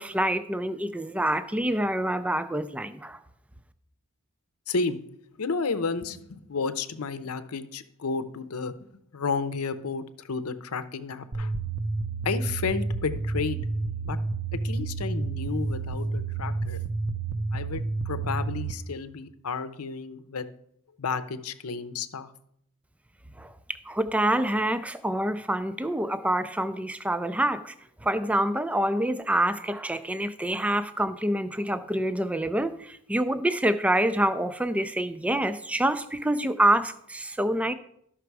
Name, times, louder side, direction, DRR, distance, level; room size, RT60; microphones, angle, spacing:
voice 1, 0.0-3.2 23.4-23.5 23.9-27.7 28.0-37.7, right 1 dB, 5° right, 0.3 m, -26 dB
voice 2, 4.7-5.0 5.4-8.7 9.1-11.5 12.2-13.6 14.0-14.2 14.6-16.8 17.5-20.5 21.0-22.3, left 4 dB, 90° left, 0.7 m, -32 dB
sound 1, 11.3-18.7, right 3 dB, 65° right, 0.7 m, -30 dB
12.5 x 5.9 x 4.7 m
head